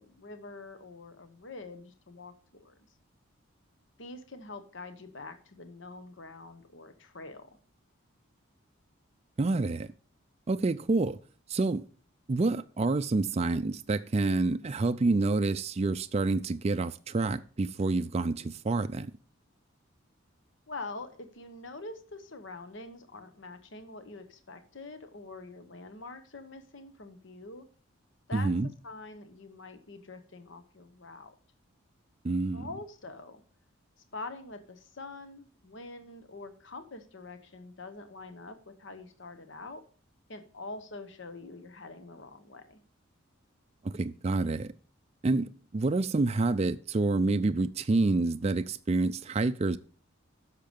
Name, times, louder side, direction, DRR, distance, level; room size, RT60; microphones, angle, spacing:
voice 1, 0.0-2.7 4.0-7.5 20.7-27.7 28.3-28.5 28.8-31.3 32.5-33.4 34.1-39.8 40.3-42.8, left 3 dB, 60° left, 1.0 m, -45 dB
voice 2, 9.4-9.9 10.5-11.2 11.5-11.8 12.3-19.1 28.3-28.7 32.2-32.7 43.8-44.7 45.2-49.8, right 3 dB, 30° right, 0.4 m, -28 dB
10.5 x 6.6 x 5.2 m
head